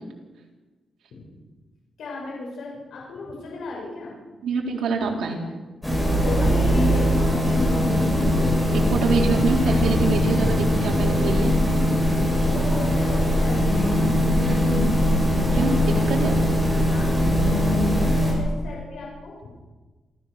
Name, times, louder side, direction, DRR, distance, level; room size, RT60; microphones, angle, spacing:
voice 1, 2.0-4.1 6.2-7.9 12.4-14.1 16.9-19.5, left 3 dB, 80° left, -3 dB, 6.3 m, -36 dB
voice 2, 4.4-5.4 8.7-11.5 15.5-16.4, right 4 dB, 80° right, 0 dB, 4.1 m, -25 dB
sound 1, 5.8-18.3, equal, 5° left, 7.4 m, -21 dB
27.5 x 14.0 x 6.7 m, 1.3 s
wide cardioid pair, 145°, 0 cm